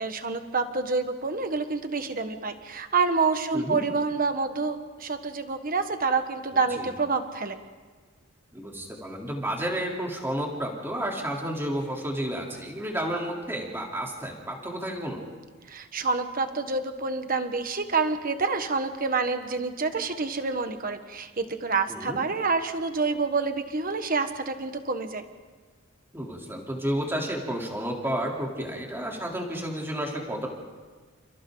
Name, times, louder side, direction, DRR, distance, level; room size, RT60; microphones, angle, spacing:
voice 1, 0.0-7.6 15.7-25.2, right 4 dB, 40° right, 8 dB, 1.4 m, -27 dB
voice 2, 6.5-6.9 8.5-15.2 21.9-22.2 26.1-30.5, right 1 dB, 10° right, -1 dB, 3.5 m, -31 dB
29.5 x 29.5 x 4.0 m, 1.4 s
head